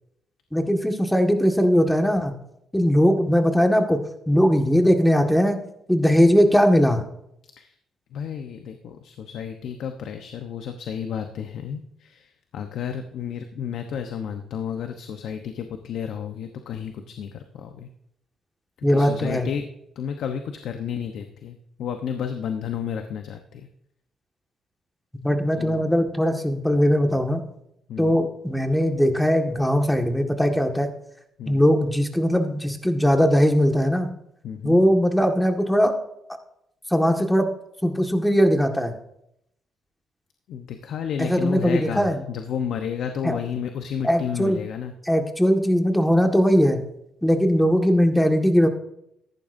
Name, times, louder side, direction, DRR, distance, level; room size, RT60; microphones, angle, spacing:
voice 1, 0.5-2.3 2.7-4.0 4.3-5.6 5.9-7.0 18.8-19.5 25.1-27.4 28.0-30.9 31.5-34.1 34.6-36.0 36.9-37.5 37.8-38.9 41.2-42.2 43.2-43.4 44.0-44.6 45.0-46.8 47.2-48.7, equal, 5° left, 4 dB, 1.8 m, -20 dB
voice 2, 8.1-17.9 18.9-19.6 20.0-23.7 25.6-25.8 27.9-28.2 31.4-31.6 34.4-34.8 40.5-44.9, left 8 dB, 75° left, 6 dB, 1.0 m, -32 dB
14.5 x 11.0 x 2.7 m, 0.76 s
cardioid pair, 90°, 0 cm